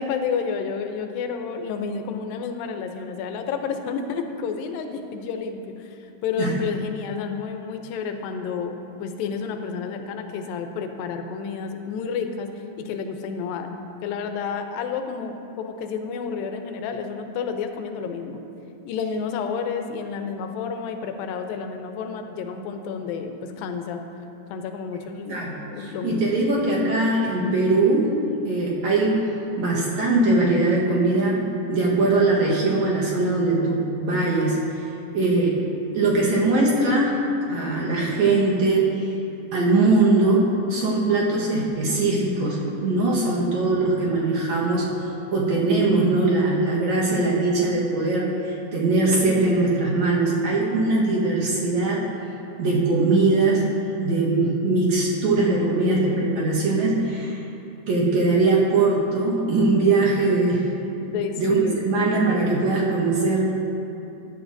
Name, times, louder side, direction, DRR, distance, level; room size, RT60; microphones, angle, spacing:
voice 1, 0.0-12.5 12.8-18.4 18.9-24.0 24.5-26.6 61.1-61.9, left 6 dB, 90° left, 6 dB, 2.5 m, -30 dB
voice 2, 25.3-28.1 28.5-29.3 29.6-31.4 31.7-34.6 35.1-35.6 35.9-37.2 37.4-39.1 39.5-44.9 45.3-52.0 52.6-53.7 54.0-57.4 57.9-60.7 61.0-61.6 61.8-63.5, right 2 dB, 60° right, -5 dB, 2.4 m, -21 dB
15.5 x 9.6 x 2.6 m, 2.8 s
omnidirectional pair, 4.0 m